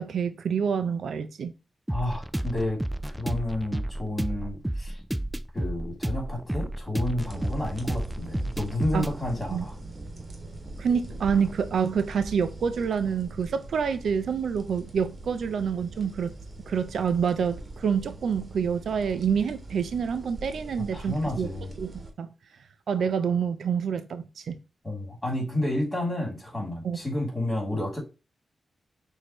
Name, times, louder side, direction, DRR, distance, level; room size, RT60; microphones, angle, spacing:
voice 1, 0.0-1.5 8.9-9.1 9.5-9.6 10.8-16.3 16.7-21.5 21.8-22.3 22.9-24.6 26.8-27.0, right 6 dB, 80° right, 0.5 m, -27 dB
voice 2, 1.9-5.0 5.5-9.7 20.9-21.7 24.8-28.0, left 1 dB, 15° left, 2.9 m, -31 dB
sound 1, 1.9-11.5, right 1 dB, 10° right, 0.4 m, -32 dB
sound 2, 7.2-22.1, right 2 dB, 35° right, 1.5 m, -42 dB
6.2 x 2.7 x 3.0 m
cardioid pair, 95°, 0 cm